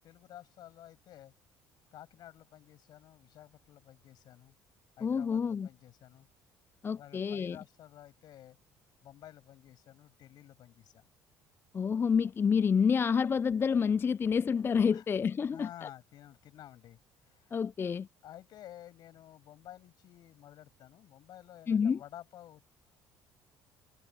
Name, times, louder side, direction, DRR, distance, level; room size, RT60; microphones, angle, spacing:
voice 1, 0.0-1.3 1.9-4.5 5.0-6.3 7.0-8.6 9.0-11.1 14.9-15.1 15.5-17.0 17.3-17.6 18.2-22.7, left 12 dB, 60° left, 7.5 m, -52 dB
voice 2, 5.0-5.7 6.8-7.6 11.7-15.9 17.5-18.1 21.7-22.0, left 6 dB, 30° left, 0.3 m, -28 dB
hypercardioid pair, 65°, 8 cm